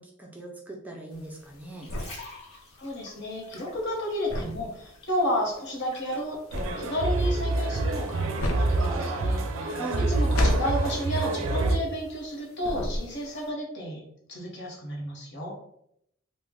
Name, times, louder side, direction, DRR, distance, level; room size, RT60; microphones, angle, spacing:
voice 1, 0.0-1.9 9.7-10.0, right 2 dB, 10° right, 0 dB, 0.4 m, -40 dB
sound 1, 1.1-12.3 12.6-13.4, left 1 dB, 80° left, 0.5 m, -33 dB
sound 2, 1.6-4.6 4.9-6.3 6.9-7.1, left 1 dB, 30° left, 1.1 m, -46 dB
voice 2, 2.8-9.7 10.1-14.0 14.3-15.5, equal, 60° left, -1 dB, 1.0 m, -32 dB
sound 3, 6.5-11.8, right 2 dB, 70° right, 0.4 m, -26 dB
3.2 x 2.1 x 3.7 m, 0.73 s
head